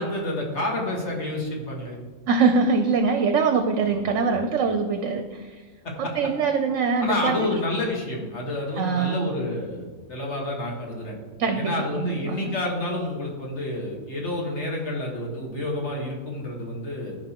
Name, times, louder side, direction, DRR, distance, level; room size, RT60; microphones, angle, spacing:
voice 1, 0.0-2.0 3.9-4.5 5.8-6.3 7.0-11.1 11.5-17.2, left 1 dB, 55° left, -1 dB, 1.9 m, -29 dB
voice 2, 2.3-5.6 6.0-7.5 8.8-9.4 11.4-12.5, right 5 dB, 65° right, 6 dB, 0.9 m, -23 dB
14.0 x 5.0 x 3.0 m, 1.4 s
omnidirectional pair, 1.5 m